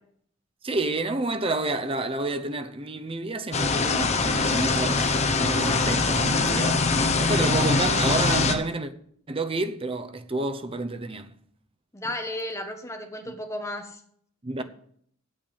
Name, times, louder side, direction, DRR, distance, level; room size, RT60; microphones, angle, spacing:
voice 1, 0.6-6.9 7.2-8.9 9.3-11.3 13.3-13.4 14.4-14.6, right 2 dB, 25° right, 0.7 m, -29 dB
sound 1, 3.5-8.5, left 3 dB, 30° left, 1.0 m, -23 dB
voice 2, 11.9-14.0 14.6-14.7, left 1 dB, 15° left, 1.3 m, -34 dB
8.7 x 7.2 x 8.5 m
head